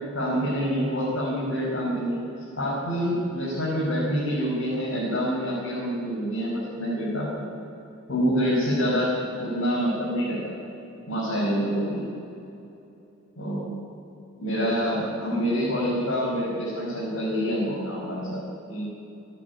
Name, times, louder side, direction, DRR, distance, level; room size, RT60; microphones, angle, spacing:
voice 1, 0.1-2.2 2.6-7.5 8.1-9.1 9.4-10.6 11.1-12.1 13.4-13.7 14.4-18.4 18.7-18.8, equal, 75° left, -6 dB, 6.0 m, -26 dB
27.5 x 10.5 x 10.0 m, 2.8 s
head